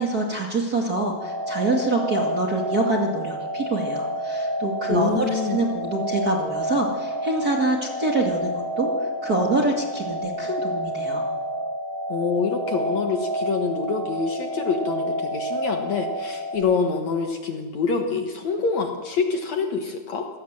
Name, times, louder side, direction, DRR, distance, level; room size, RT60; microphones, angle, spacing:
voice 1, 0.0-11.3, right 2 dB, 30° right, -1 dB, 2.0 m, -25 dB
sound 1, 0.9-16.6, equal, 65° right, 8.0 m, -29 dB
voice 2, 4.9-5.6 12.1-20.3, left 5 dB, 60° left, 4 dB, 2.2 m, -26 dB
27.0 x 17.5 x 7.5 m, 1.4 s
omnidirectional pair, 4.4 m